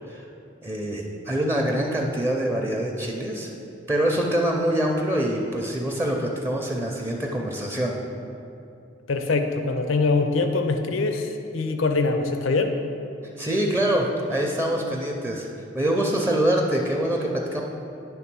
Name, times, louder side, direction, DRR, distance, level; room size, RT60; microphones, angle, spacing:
voice 1, 0.6-3.5 3.9-7.9 13.4-15.5 15.7-17.6, right 1 dB, 15° right, 0 dB, 0.5 m, -25 dB
voice 2, 9.1-12.8, left 3 dB, 85° left, 6 dB, 0.6 m, -23 dB
10.0 x 3.5 x 6.0 m, 2.6 s
head